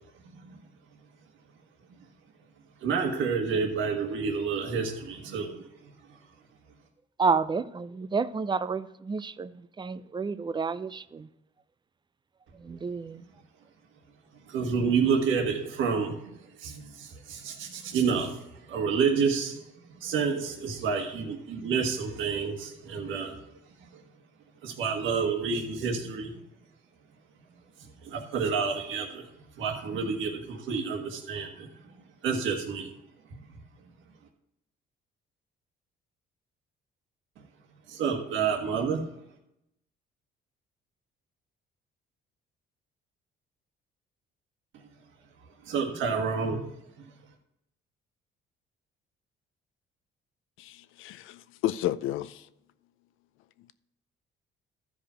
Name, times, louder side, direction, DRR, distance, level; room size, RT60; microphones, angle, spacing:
voice 1, 2.8-5.6 14.5-16.3 16.6-18.4 18.7-19.6 20.0-23.4 24.6-26.3 28.0-29.2 29.6-31.7 32.2-32.9 37.9-39.0 45.7-46.7, right 5 dB, 75° right, 1.6 m, -29 dB
voice 2, 7.2-9.5 9.8-11.3 12.6-13.2, right 5 dB, 20° right, 0.5 m, -30 dB
voice 3, 50.6-52.4, left 13 dB, 80° left, 0.6 m, -32 dB
13.0 x 5.1 x 5.6 m
cardioid pair, 85°, 20 cm